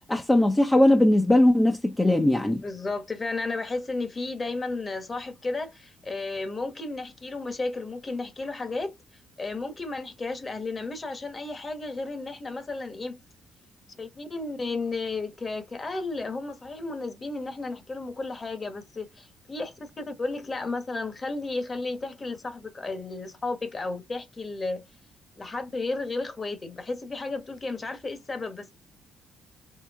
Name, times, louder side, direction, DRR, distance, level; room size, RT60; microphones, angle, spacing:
voice 1, 0.1-2.6, left 1 dB, 15° left, 0.7 m, -20 dB
voice 2, 2.6-9.0 9.4-13.2 14.0-24.8 25.4-28.7, left 3 dB, 30° left, 1.3 m, -33 dB
4.5 x 3.2 x 3.6 m
cardioid pair, 90°, 0 cm